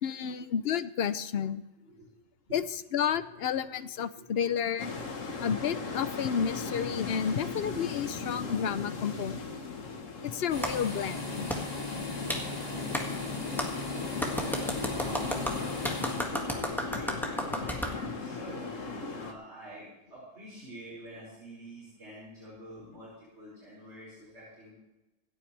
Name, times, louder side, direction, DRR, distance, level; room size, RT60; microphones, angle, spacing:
voice 1, 0.0-1.6 2.5-4.9 5.4-9.5 10.2-11.5, left 8 dB, 60° left, 13 dB, 0.9 m, -31 dB
voice 2, 3.0-3.6 4.1-4.2 5.0-5.4 5.9-6.0 14.3-24.7, right 1 dB, 60° right, -9 dB, 5.9 m, -47 dB
sound 1, 4.8-19.3, left 4 dB, 90° left, 1.8 m, -38 dB
sound 2, 10.5-16.7, left 2 dB, 35° left, 1.7 m, -38 dB
Clapping, 10.6-10.7 11.5-11.6 12.3-12.4 12.9-13.0 13.6-13.7 14.2-17.9, equal, ahead, 1.8 m, -32 dB
26.5 x 9.0 x 3.3 m, 1.0 s
omnidirectional pair, 1.3 m